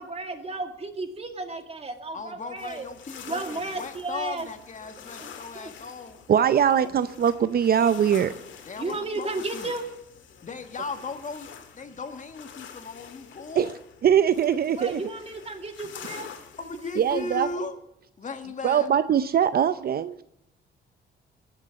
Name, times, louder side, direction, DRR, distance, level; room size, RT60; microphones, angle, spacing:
voice 1, 0.0-2.8 3.3-4.5 5.2-5.3 5.5-5.7 8.8-9.8 14.8-16.3, right 2 dB, 30° right, 5 dB, 2.2 m, -33 dB
voice 2, 2.1-6.2 8.6-9.7 10.4-13.7 16.6-17.8 18.2-18.9, left 3 dB, 40° left, 7 dB, 1.8 m, -37 dB
sound 1, 2.6-17.6, left 7 dB, 70° left, 2.1 m, -46 dB
voice 3, 6.3-8.3 13.6-13.7 14.0-15.0 17.0-17.5 18.6-20.2, right 8 dB, 50° right, 13 dB, 0.6 m, -21 dB
19.0 x 7.2 x 7.6 m, 0.80 s
cardioid pair, 90°, 20 cm